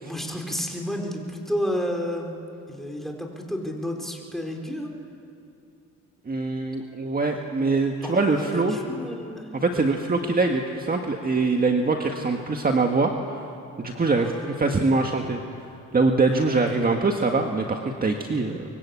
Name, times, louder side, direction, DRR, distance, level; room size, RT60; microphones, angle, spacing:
voice 1, 0.0-2.4 2.7-4.9 8.0-10.0 14.1-14.7 16.3-16.6, equal, ahead, 1 dB, 4.4 m, -31 dB
voice 2, 6.3-8.8 9.5-13.4 13.8-15.4 15.9-18.6, right 3 dB, 30° right, 3 dB, 1.8 m, -23 dB
24.0 x 23.5 x 8.5 m, 2.8 s
cardioid pair, 90°, 30 cm